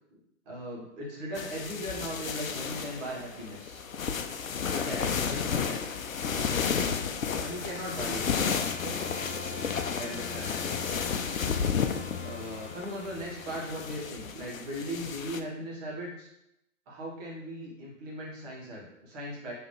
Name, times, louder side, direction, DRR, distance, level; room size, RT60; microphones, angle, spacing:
voice 1, 0.5-3.8 4.7-5.8 6.3-6.8 7.4-9.0 9.9-10.6 12.2-16.3 16.9-19.5, equal, 30° right, -5 dB, 1.3 m, -38 dB
sound 1, 1.3-15.4, left 6 dB, 90° left, 0.5 m, -32 dB
sound 2, 6.1-14.3, left 3 dB, 5° right, 0.8 m, -43 dB
3.9 x 2.9 x 3.2 m, 0.83 s
figure-of-eight pair, 130°, 39 cm